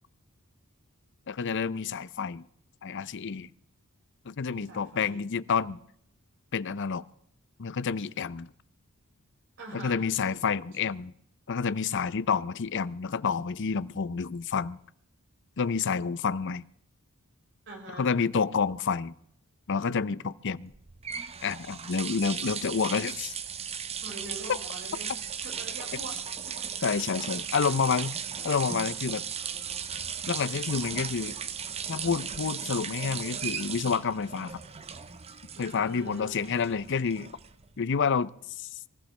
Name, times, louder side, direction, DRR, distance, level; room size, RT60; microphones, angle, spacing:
voice 1, 1.3-2.4 2.8-3.5 4.3-5.8 6.5-7.0 7.6-8.5 9.7-11.1 11.5-14.8 15.6-16.6 18.0-19.1 19.7-20.7 21.4-23.3 26.8-29.2 30.3-31.3 31.9-34.6 35.6-37.3 37.8-38.7, left 5 dB, 55° left, 0.6 m, -29 dB
voice 2, 4.5-5.2 9.6-10.1 17.7-18.1 24.0-26.2 26.5-26.8 28.3-28.8 30.6-30.9 35.5-36.6, right 2 dB, 55° right, 5.2 m, -44 dB
sound 1, 20.7-37.8, right 7 dB, 25° right, 0.7 m, -36 dB
25.0 x 14.5 x 3.3 m
head